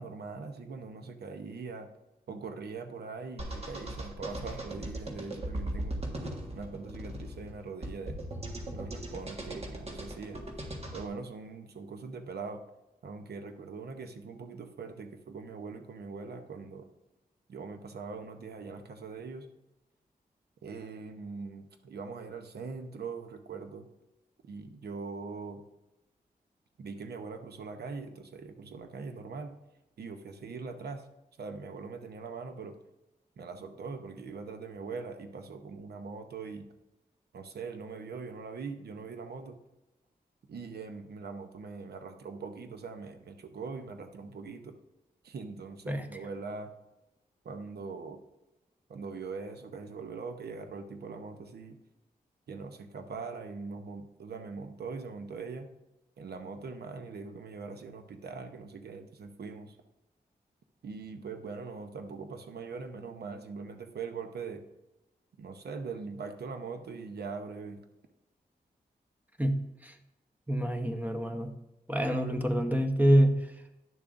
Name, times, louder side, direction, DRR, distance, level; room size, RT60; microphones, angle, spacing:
voice 1, 0.0-1.9 2.3-6.0 6.5-8.2 8.7-10.4 10.9-12.6 13.0-16.9 17.5-19.5 20.6-23.9 24.4-25.6 26.8-29.5 30.0-31.0 31.4-32.8 33.4-36.7 37.3-39.6 40.5-44.7 45.2-46.7 47.4-48.2 48.9-51.8 52.5-55.7 56.2-59.8 60.8-64.6 65.4-67.8, right 4 dB, 80° right, 7 dB, 0.8 m, -41 dB
sound 1, 3.4-11.1, right 1 dB, 40° right, 1.5 m, -38 dB
voice 2, 69.4-69.9 70.5-71.5 71.9-73.5, right 1 dB, 10° right, 6 dB, 0.9 m, -26 dB
10.5 x 6.9 x 2.6 m, 0.99 s
cardioid pair, 60°, 16 cm